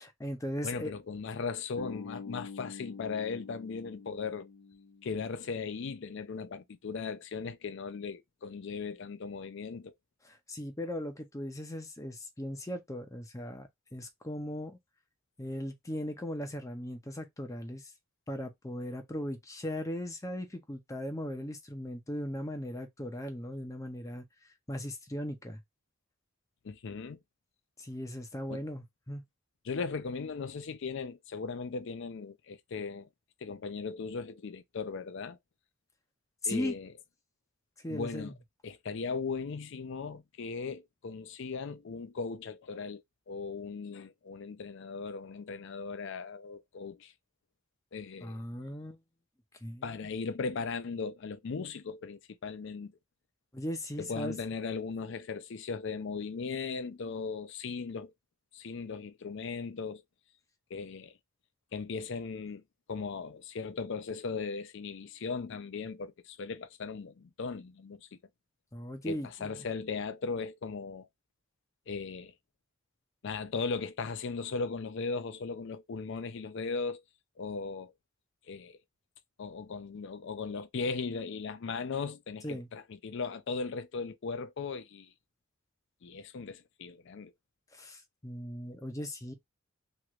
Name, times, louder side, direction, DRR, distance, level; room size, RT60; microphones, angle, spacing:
voice 1, 0.0-0.9 10.2-14.8 15.4-17.9 18.3-24.2 24.7-25.6 27.8-29.2 36.4-36.8 37.8-38.4 48.2-49.0 49.6-49.8 53.5-54.3 68.7-69.7 82.4-82.7 87.7-89.3, left 1 dB, 15° left, 0.7 m, -38 dB
voice 2, 0.6-4.5 5.0-9.9 26.6-27.2 28.5-28.6 29.6-33.1 33.4-35.4 36.5-36.9 37.9-38.3 38.6-47.1 47.9-48.4 49.8-52.9 54.0-58.1 58.5-60.0 60.7-61.1 61.7-62.6 62.9-68.0 69.1-71.1 71.9-72.3 73.2-77.0 77.4-77.9 78.5-78.8 79.4-85.1 86.0-87.3, left 4 dB, 60° left, 0.5 m, -38 dB
Bass guitar, 1.8-5.7, left 5 dB, 75° left, 1.0 m, -46 dB
3.1 x 3.0 x 2.4 m
head